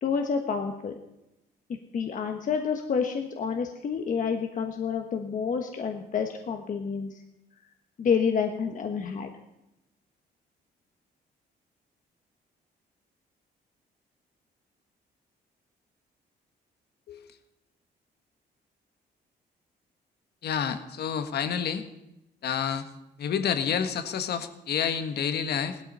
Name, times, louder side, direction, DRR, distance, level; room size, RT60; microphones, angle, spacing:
voice 1, 0.0-0.9 1.9-7.2 8.0-9.3, left 6 dB, 50° left, 4 dB, 1.3 m, -28 dB
voice 2, 20.4-21.9 22.4-22.9 23.2-25.8, left 7 dB, 70° left, 9 dB, 1.4 m, -29 dB
16.5 x 12.5 x 5.5 m, 0.89 s
cardioid pair, 115°, 17 cm